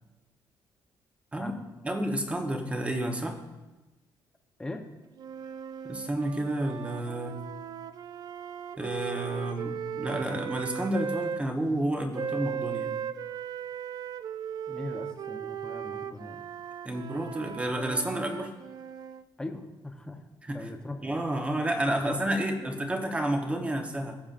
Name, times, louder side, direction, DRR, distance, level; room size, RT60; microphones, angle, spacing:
voice 1, 1.8-3.4 5.8-7.4 8.8-12.9 16.8-18.5 20.4-20.7 21.0-24.2, right 1 dB, 15° right, 4 dB, 1.1 m, -30 dB
sound 1, 5.2-11.4 12.1-19.2, right 8 dB, 50° right, 0.4 m, -37 dB
voice 2, 14.7-16.4 19.4-20.2 20.5-21.0 22.3-22.8, left 2 dB, 10° left, 4 dB, 0.9 m, -40 dB
20.0 x 7.0 x 2.6 m, 1.1 s
cardioid pair, 140°, 9 cm